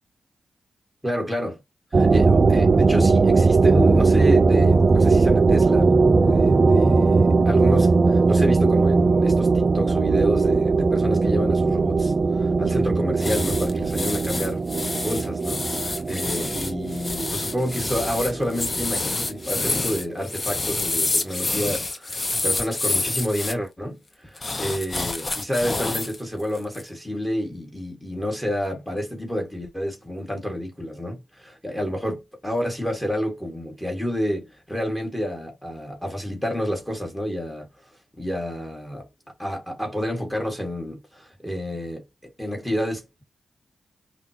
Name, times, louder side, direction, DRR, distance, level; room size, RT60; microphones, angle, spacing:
voice 1, 1.0-1.6 1.9-37.7 38.2-39.1 39.4-43.2, equal, 10° left, 1.9 m, -29 dB
sound 1, 1.9-19.3, right 4 dB, 50° right, 0.4 m, -19 dB
sound 2, 13.2-23.5 24.4-26.2 26.5-26.8, left 2 dB, 40° left, 0.7 m, -28 dB
5.5 x 2.3 x 2.9 m
supercardioid pair, 45°, 0 cm